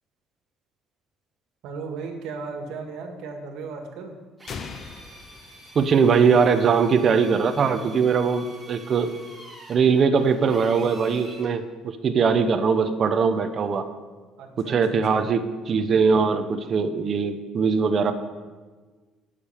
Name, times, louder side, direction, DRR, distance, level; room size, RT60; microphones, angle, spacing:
voice 1, 1.6-4.1 14.4-15.2, right 4 dB, 75° right, 4 dB, 1.8 m, -36 dB
Drill, 4.4-11.5, right 2 dB, 10° right, 2.7 m, -46 dB
sound 1, 4.5-6.4, left 5 dB, 40° left, 0.7 m, -40 dB
voice 2, 5.7-9.1 9.7-13.9 14.6-18.1, right 5 dB, 40° right, 8 dB, 0.9 m, -21 dB
8.5 x 6.8 x 8.4 m, 1.4 s
cardioid pair, 130°, 0 cm